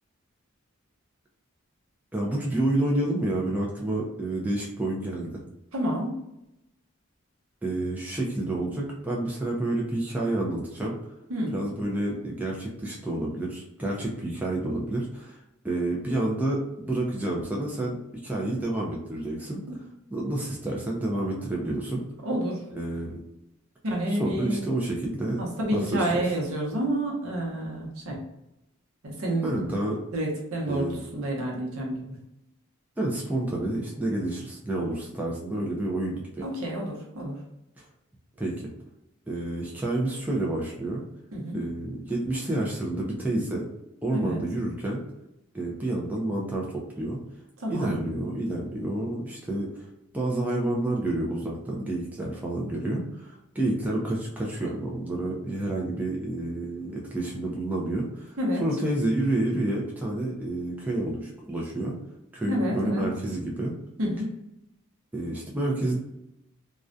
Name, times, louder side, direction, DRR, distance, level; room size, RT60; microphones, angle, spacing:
voice 1, 2.1-5.4 7.6-11.0 11.5-15.4 15.6-19.8 20.1-22.0 22.7-23.2 24.1-25.4 25.7-26.1 29.4-30.0 30.7-31.0 33.0-36.5 37.8-37.9 38.4-38.7 39.3-41.0 41.5-43.7 44.0-45.0 45.5-47.2 47.7-49.8 50.1-62.0 62.3-63.7 65.1-66.0, right 1 dB, 10° right, -3 dB, 0.3 m, -29 dB
voice 2, 5.7-6.2 11.3-11.5 22.2-22.6 23.8-24.6 25.4-28.2 29.0-29.6 30.1-32.2 36.4-37.4 41.3-41.6 44.1-44.4 47.6-48.0 58.4-58.6 62.5-63.1 64.0-64.3, right 1 dB, 80° right, -1 dB, 0.7 m, -29 dB
2.3 x 2.1 x 2.5 m, 0.87 s
head